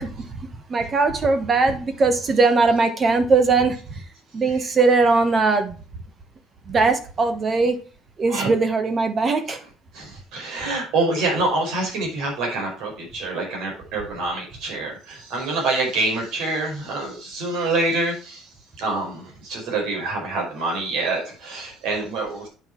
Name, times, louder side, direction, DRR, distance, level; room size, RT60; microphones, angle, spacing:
voice 1, 0.0-4.0 4.3-5.8 6.7-7.8 8.2-9.6, right 3 dB, 25° right, 1.2 m, -20 dB
voice 2, 9.9-18.4 18.8-22.5, right 2 dB, 70° right, 4.8 m, -26 dB
8.9 x 5.6 x 4.5 m
cardioid pair, 165°, 0 cm